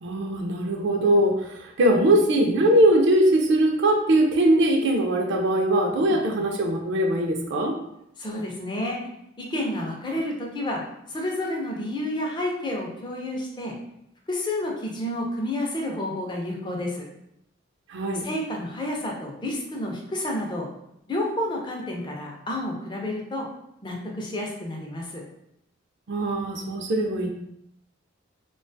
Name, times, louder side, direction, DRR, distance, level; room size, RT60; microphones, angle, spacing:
voice 1, 0.0-7.8 17.9-18.3 26.1-27.3, right 1 dB, 60° right, 3 dB, 0.4 m, -21 dB
voice 2, 6.0-6.4 8.2-9.0 9.4-10.8 11.1-13.8 14.3-17.1 18.2-20.7 21.1-23.5 23.8-25.2, left 1 dB, 25° left, -1 dB, 0.4 m, -30 dB
2.4 x 2.2 x 2.6 m, 0.79 s
head